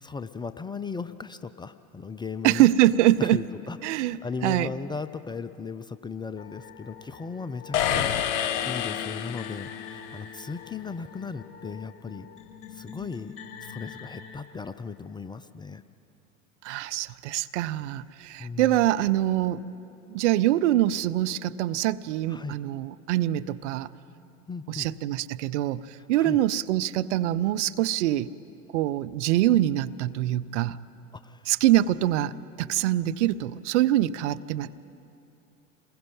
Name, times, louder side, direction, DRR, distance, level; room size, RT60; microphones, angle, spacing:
voice 1, 0.0-2.7 3.2-12.3 12.7-13.3 13.6-15.8 18.4-18.8 22.3-22.6 24.5-24.9 26.0-26.4 31.1-31.5, left 5 dB, 10° left, 12 dB, 0.4 m, -37 dB
voice 2, 2.4-3.4 3.8-4.7 16.6-19.6 20.1-23.9 24.7-28.3 28.7-30.8 31.5-34.8, right 14 dB, 60° right, 14 dB, 0.7 m, -24 dB
sound 1, 6.4-14.4, left 7 dB, 30° left, 4.3 m, -45 dB
sound 2, 7.7-10.0, left 9 dB, 60° left, 1.1 m, -28 dB
27.5 x 21.0 x 5.5 m, 2.8 s
figure-of-eight pair, 75°, 40 cm